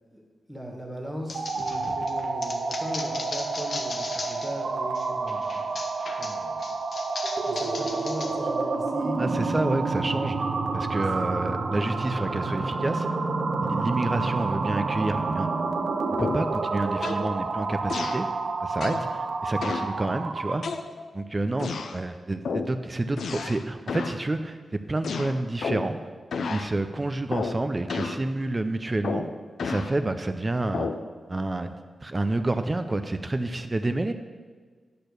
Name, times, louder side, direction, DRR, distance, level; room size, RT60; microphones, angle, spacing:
voice 1, 0.5-5.9 6.2-6.7 7.4-9.2 18.8-19.0, equal, ahead, 0 dB, 1.8 m, -38 dB
sound 1, 1.2-20.7, right 3 dB, 65° right, 0.8 m, -29 dB
sound 2, 1.3-4.6 5.0-8.3, left 3 dB, 60° left, 1.0 m, -37 dB
voice 2, 9.2-10.4 10.7-13.1 13.6-15.5 16.2-18.3 18.6-19.0 19.4-20.6 21.1-26.0 26.4-29.3 29.6-30.9 31.3-31.7 32.0-34.1, right 2 dB, 25° right, 8 dB, 0.5 m, -28 dB
sound 3, 16.2-16.5 17.0-17.3 17.9-18.3 18.8-19.1 19.6-19.9 20.6-21.2 21.6-22.0 22.4-22.8 23.2-23.6 23.9-24.2 25.0-26.0 26.3-26.7 27.3-27.6 27.9-28.2 29.0-29.9 30.7-31.0, left 4 dB, 80° left, 0.5 m, -31 dB
10.0 x 4.4 x 6.6 m, 1.5 s
wide cardioid pair, 90°, 0 cm